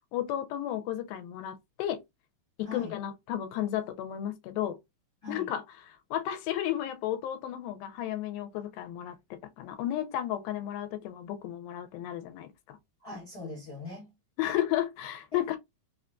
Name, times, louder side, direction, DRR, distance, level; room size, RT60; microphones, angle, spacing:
voice 1, 0.1-2.0 2.6-4.8 5.3-12.8 14.4-15.6, left 12 dB, 90° left, 2.4 m, -33 dB
voice 2, 2.6-2.9 5.2-5.5 13.0-14.1 15.3-15.6, left 3 dB, 65° left, 0.9 m, -41 dB
5.4 x 2.2 x 2.5 m
omnidirectional pair, 4.0 m